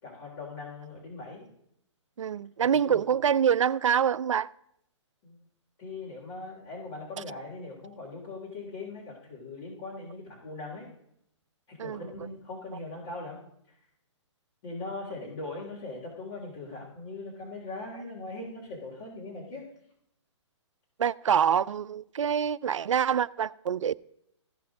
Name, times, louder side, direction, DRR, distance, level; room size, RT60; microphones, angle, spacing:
voice 1, 0.0-1.5 2.6-3.0 5.2-5.4 5.8-10.9 11.7-13.4 14.6-19.6, left 3 dB, 55° left, 3.7 m, -40 dB
voice 2, 2.2-4.5 11.8-12.0 21.0-23.9, right 8 dB, 85° right, 0.4 m, -25 dB
15.0 x 5.7 x 3.7 m
hypercardioid pair, 140°, 16 cm